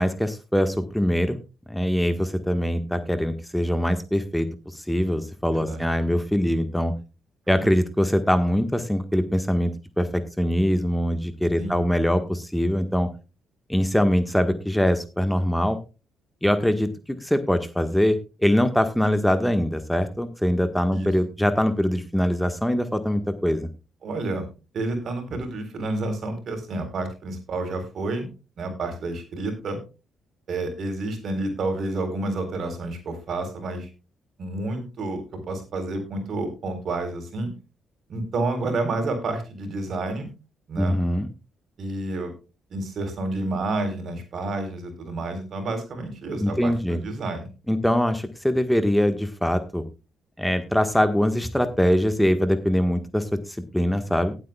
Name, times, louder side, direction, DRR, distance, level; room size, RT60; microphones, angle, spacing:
voice 1, 0.0-1.4 1.7-6.9 7.5-13.1 13.7-15.8 16.4-23.7 40.8-41.3 46.4-47.0 47.7-49.8 50.4-54.3, equal, 5° left, 9 dB, 1.4 m, -23 dB
voice 2, 5.5-5.9 7.6-7.7 11.6-11.8 20.9-21.1 24.0-24.5 24.7-28.3 28.6-29.8 30.5-33.9 34.4-37.5 38.1-40.3 40.7-41.0 41.8-42.3 42.7-47.5, right 2 dB, 60° right, 7 dB, 3.9 m, -29 dB
18.5 x 8.2 x 2.3 m, 0.30 s
hypercardioid pair, 55°, 0 cm